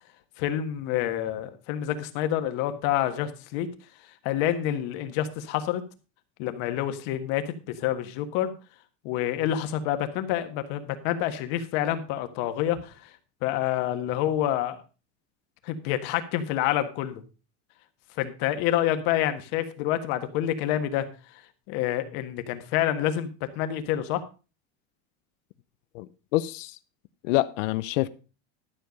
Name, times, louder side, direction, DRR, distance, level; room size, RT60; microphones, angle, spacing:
voice 1, 0.4-3.7 4.2-5.8 6.4-8.5 9.0-12.9 13.4-14.8 15.6-17.2 18.2-21.1 21.7-23.3 23.5-24.2, left 11 dB, 60° left, 1.6 m, -27 dB
voice 2, 25.9-26.8 27.2-28.1, left 17 dB, 90° left, 0.8 m, -27 dB
12.5 x 6.8 x 5.2 m
cardioid pair, 170°, 37 cm